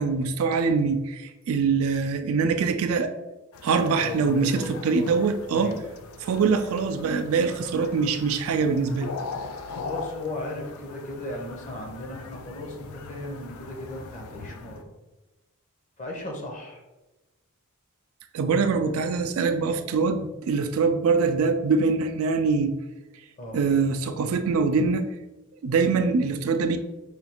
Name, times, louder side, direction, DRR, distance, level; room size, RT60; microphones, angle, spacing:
voice 1, 0.0-3.1 3.6-5.7 6.2-9.1 18.3-22.7 23.5-25.1 25.6-26.8, right 4 dB, 70° right, 8 dB, 0.3 m, -23 dB
sound 1, 3.5-14.8, left 4 dB, 70° left, 0.3 m, -41 dB
voice 2, 3.9-5.8 9.7-14.9 16.0-16.8 23.4-23.6, left 1 dB, 35° left, 0 dB, 0.8 m, -36 dB
5.0 x 2.3 x 2.9 m, 1.1 s
head